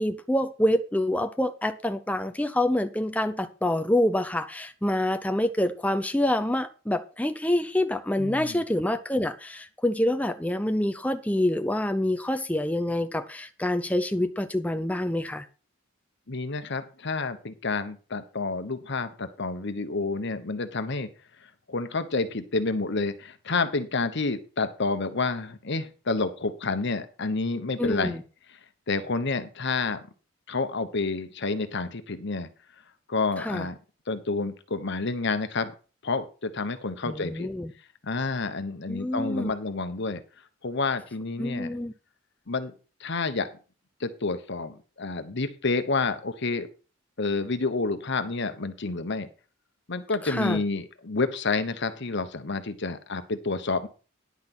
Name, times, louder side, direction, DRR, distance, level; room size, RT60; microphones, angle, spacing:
voice 1, 0.0-15.5 27.8-28.2 33.4-33.7 37.1-37.7 38.9-39.5 41.4-41.9 50.2-50.6, left 1 dB, 5° left, 0.6 m, -26 dB
voice 2, 8.2-8.6 16.3-21.1 21.7-28.2 28.9-30.0 30.5-32.5 33.1-33.8 34.1-35.7 36.0-37.5 38.0-40.2 40.6-41.7 42.5-42.7 43.0-43.5 44.0-46.7 47.2-49.3 49.9-53.9, left 3 dB, 60° left, 1.1 m, -29 dB
10.5 x 5.9 x 6.0 m
head